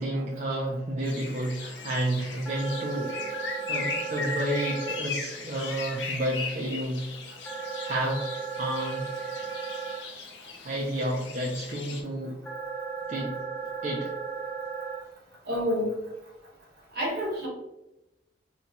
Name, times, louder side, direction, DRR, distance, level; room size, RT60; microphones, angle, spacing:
voice 1, 0.0-3.1 3.7-7.0 7.5-8.2 8.6-9.1 10.6-12.4 13.1-13.4 13.8-14.1, right 1 dB, 45° right, -3 dB, 0.4 m, -30 dB
sound 1, 1.0-12.0, left 4 dB, 85° left, 0.5 m, -38 dB
sound 2, 2.4-4.9 7.4-9.9 12.4-14.9, right 5 dB, 5° left, 0.8 m, -35 dB
voice 2, 15.5-15.9 16.9-17.5, equal, 60° right, -4 dB, 1.1 m, -28 dB
2.6 x 2.2 x 2.8 m, 0.95 s
head